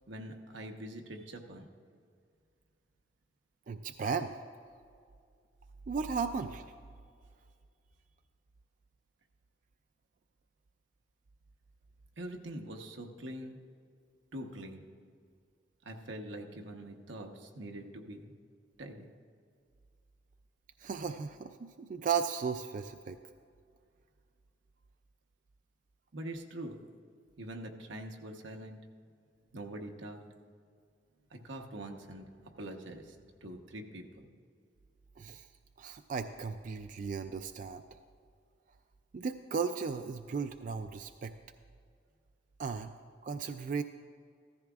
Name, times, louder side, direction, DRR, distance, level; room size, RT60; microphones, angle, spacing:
voice 1, 0.1-1.7 12.2-13.6 14.3-14.9 15.8-18.3 18.8-19.0 26.1-26.8 27.4-28.8 29.5-30.2 31.3-32.3 32.6-34.3, right 1 dB, 90° right, 3 dB, 1.0 m, -44 dB
voice 2, 3.7-4.3 5.9-6.7 20.8-23.2 35.2-35.5 35.8-37.8 39.1-41.3 42.6-42.9 43.2-43.8, right 5 dB, 45° right, 8 dB, 0.3 m, -35 dB
15.5 x 13.5 x 2.4 m, 2.2 s
head